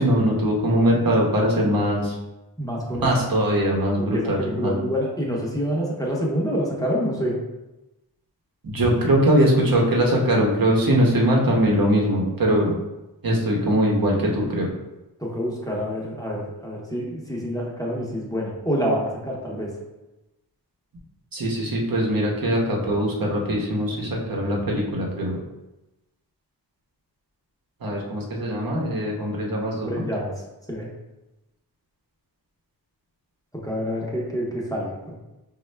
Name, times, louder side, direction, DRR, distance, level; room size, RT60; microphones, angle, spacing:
voice 1, 0.0-2.1 3.0-4.7 8.6-12.7 13.2-14.7 21.3-25.4 27.8-30.1, equal, 60° right, -2 dB, 0.9 m, -21 dB
voice 2, 2.6-3.1 4.0-7.4 15.2-19.8 25.0-25.3 29.8-30.3 30.7-30.9 33.5-35.1, equal, 10° left, -4 dB, 0.7 m, -27 dB
5.2 x 2.3 x 3.2 m, 1.0 s
wide cardioid pair, 125°, 39 cm